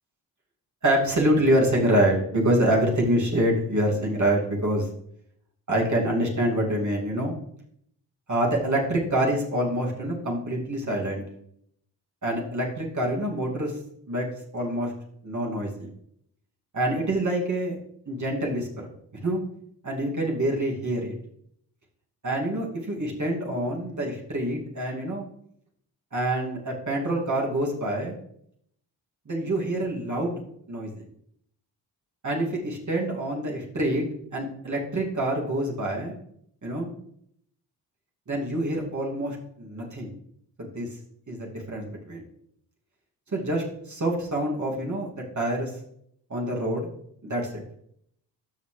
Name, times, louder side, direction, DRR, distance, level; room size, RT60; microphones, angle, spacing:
voice 1, 0.8-4.9 5.7-7.3 8.3-11.2 12.2-13.8 14.1-14.3 14.5-14.9 15.2-15.9 16.7-17.8 18.1-18.9 19.2-19.4 19.8-21.1 22.2-25.2 26.1-28.1 29.3-30.4 30.7-31.0 32.2-34.1 34.3-36.1 36.6-36.9 38.3-40.1 40.6-40.9 41.3-42.2 43.3-45.7 46.3-46.9 47.2-47.6, right 1 dB, 40° right, -2 dB, 2.5 m, -26 dB
13.0 x 5.7 x 3.3 m, 0.71 s
cardioid pair, 55°, 43 cm